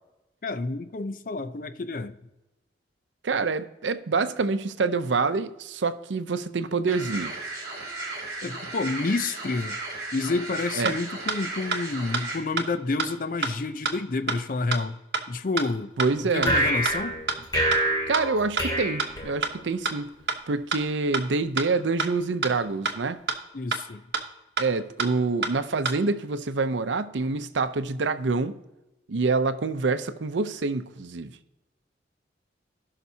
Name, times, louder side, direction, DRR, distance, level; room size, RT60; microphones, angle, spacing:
voice 1, 0.4-2.2 8.4-9.8 10.1-15.0 15.3-15.9 16.2-17.2 23.5-24.0, left 3 dB, 45° left, 0.5 m, -29 dB
voice 2, 3.2-7.3 10.8-11.0 16.0-16.6 18.1-20.1 20.5-23.2 24.6-28.6 29.1-31.3, right 4 dB, 85° right, 0.6 m, -26 dB
sound 1, 6.9-12.4, right 2 dB, 20° right, 2.8 m, -35 dB
sound 2, 10.9-11.0 11.3-11.4 11.7-11.8 12.1-12.2 12.6-12.7 13.0-13.1 13.4-13.5 13.9-14.0 14.3-14.4 14.7-14.8 15.1-15.2 15.6-15.7 16.0-16.1 16.4-16.5 16.9-17.0 17.3-17.4 17.7-17.8 18.1-18.2 18.6-18.7 19.0-19.1 19.4-19.5 19.9-20.0 20.3-20.4 20.7-20.8 21.1-21.2 21.6-21.7 22.0-22.1 22.4-22.5 22.9-23.0 23.3-23.4 23.7-23.8 24.1-24.2 24.6-24.7 25.0-25.1 25.4-25.5 25.9-26.0, right 4 dB, 65° right, 1.0 m, -26 dB
sound 3, 16.4-19.8, right 1 dB, 25° left, 2.6 m, -26 dB
17.0 x 5.8 x 2.8 m
head